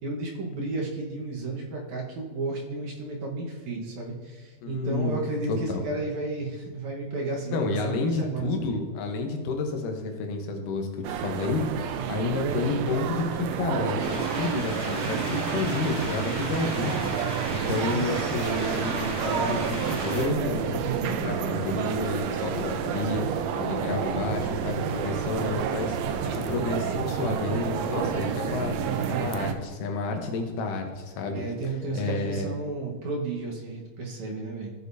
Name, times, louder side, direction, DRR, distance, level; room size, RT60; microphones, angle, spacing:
voice 1, 0.0-8.9 11.9-12.2 15.5-15.9 16.2-16.7 17.6-17.8 20.7-21.2 28.7-29.3 31.3-34.7, right 3 dB, 65° right, -2 dB, 2.5 m, -33 dB
voice 2, 4.6-5.2 5.5-5.9 7.5-11.7 12.1-17.1 17.5-28.8 29.1-31.4 31.9-32.5, left 3 dB, 80° left, 3 dB, 2.6 m, -30 dB
sound 1, 11.0-29.5, right 7 dB, 90° right, 1.5 m, -30 dB
sound 2, 14.0-20.3, right 2 dB, 40° right, 2.5 m, -36 dB
15.0 x 6.5 x 2.7 m, 1.4 s
omnidirectional pair, 3.7 m